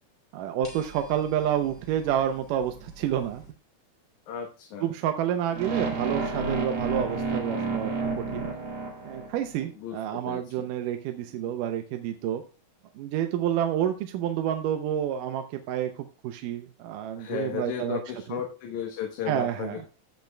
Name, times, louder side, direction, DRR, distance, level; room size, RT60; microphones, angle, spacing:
voice 1, 0.3-3.4 4.8-8.5 9.1-12.4 13.0-18.0 18.3-18.4 19.3-19.8, right 10 dB, 80° right, 7 dB, 2.2 m, -29 dB
sound 1, 0.6-3.5, right 1 dB, 10° left, 2.8 m, -48 dB
voice 2, 4.3-4.9 9.8-10.7 11.5-11.6 17.2-19.9, left 8 dB, 70° left, 3 dB, 2.4 m, -35 dB
sound 2, 5.5-9.6, right 3 dB, 50° right, 3.1 m, -30 dB
16.0 x 5.8 x 2.3 m, 0.34 s
omnidirectional pair, 3.8 m